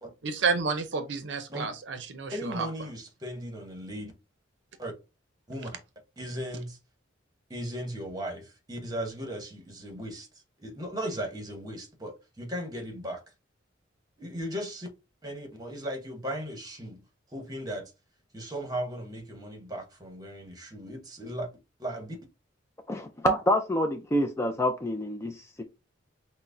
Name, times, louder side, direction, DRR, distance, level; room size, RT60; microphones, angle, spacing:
voice 1, 0.2-2.7, right 4 dB, 60° right, 0.6 m, -30 dB
voice 2, 2.3-4.1 4.8-4.9 5.5-5.7 6.2-6.8 7.5-10.3 10.6-13.2 14.2-14.9 15.2-17.1 17.3-17.9 18.3-21.5 21.8-22.2, equal, 20° right, 1.0 m, -37 dB
voice 3, 22.9-25.6, equal, 15° left, 0.3 m, -27 dB
5.7 x 2.1 x 2.5 m
head